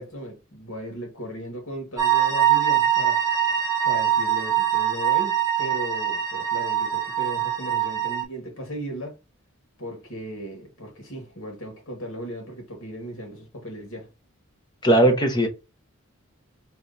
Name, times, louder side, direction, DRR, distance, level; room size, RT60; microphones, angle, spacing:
voice 1, 0.0-3.2 3.8-9.2 9.8-14.1, right 1 dB, 85° left, 1.9 m, -36 dB
sound 1, 2.0-8.2, right 10 dB, 20° right, 0.8 m, -23 dB
voice 2, 14.8-15.5, right 1 dB, 20° left, 1.0 m, -18 dB
3.5 x 3.0 x 4.0 m
head